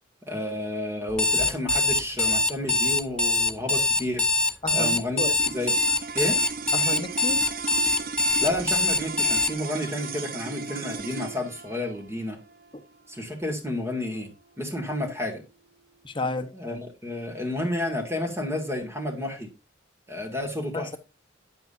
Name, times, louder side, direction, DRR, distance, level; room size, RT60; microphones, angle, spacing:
voice 1, 0.3-4.2 4.7-5.8 6.1-6.4 8.4-12.4 13.1-14.3 14.6-15.4 16.5-19.5 20.1-21.0, left 1 dB, 15° right, 2.1 m, -31 dB
Alarm, 1.1-9.5, left 2 dB, 5° left, 0.4 m, -23 dB
voice 2, 4.6-5.3 6.7-7.4 16.0-16.5 20.7-21.0, left 2 dB, 25° left, 0.9 m, -31 dB
sound 1, 5.4-15.8, right 5 dB, 50° right, 0.7 m, -37 dB
9.5 x 7.8 x 2.6 m
head